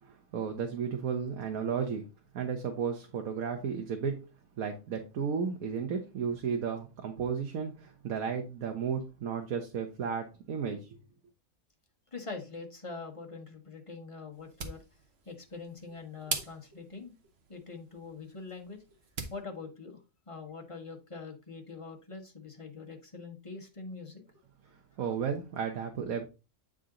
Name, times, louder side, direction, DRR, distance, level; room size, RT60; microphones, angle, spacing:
voice 1, 0.0-2.1 2.3-4.2 4.6-11.0 25.0-26.3, right 6 dB, 75° right, 4 dB, 1.3 m, -33 dB
voice 2, 12.1-14.8 15.2-17.1 17.5-18.8 19.3-24.2, left 4 dB, 25° left, 2 dB, 1.1 m, -44 dB
sound 1, 14.3-19.4, right 4 dB, 50° right, 1.1 m, -43 dB
8.3 x 3.8 x 3.7 m, 0.29 s
omnidirectional pair, 1.5 m